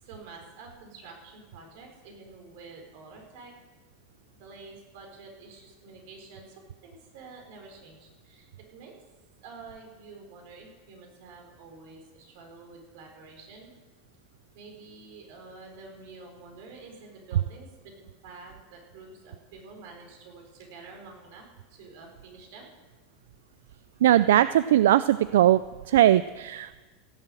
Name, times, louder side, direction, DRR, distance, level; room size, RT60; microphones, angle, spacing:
voice 1, 0.0-3.5 4.3-8.9 9.4-13.7 14.5-17.9 18.2-22.7, right 4 dB, 65° right, 2 dB, 4.4 m, -48 dB
voice 2, 24.0-25.6 25.9-26.8, right 12 dB, 90° right, 15 dB, 0.3 m, -20 dB
16.5 x 7.5 x 7.7 m, 1.2 s
supercardioid pair, 145°, 0 cm